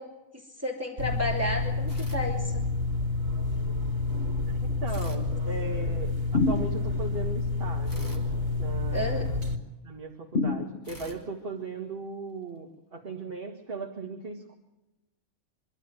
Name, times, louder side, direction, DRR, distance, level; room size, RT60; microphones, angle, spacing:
voice 1, 0.0-2.7 4.7-4.8 8.9-9.3, left 1 dB, 10° right, 0 dB, 3.1 m, -32 dB
sound 1, 1.0-9.6, left 3 dB, 80° right, 3.2 m, -29 dB
sound 2, 1.9-3.0 4.9-6.3 7.9-9.6 10.8-12.4, left 1 dB, 15° left, 3.0 m, -49 dB
voice 2, 4.5-8.3 8.6-9.4 9.8-14.6, right 3 dB, 45° right, 1 dB, 2.3 m, -38 dB
sound 3, 6.3-7.2 10.3-11.3, left 3 dB, 55° left, 1.4 m, -28 dB
25.0 x 13.0 x 9.2 m, 0.99 s
omnidirectional pair, 1.4 m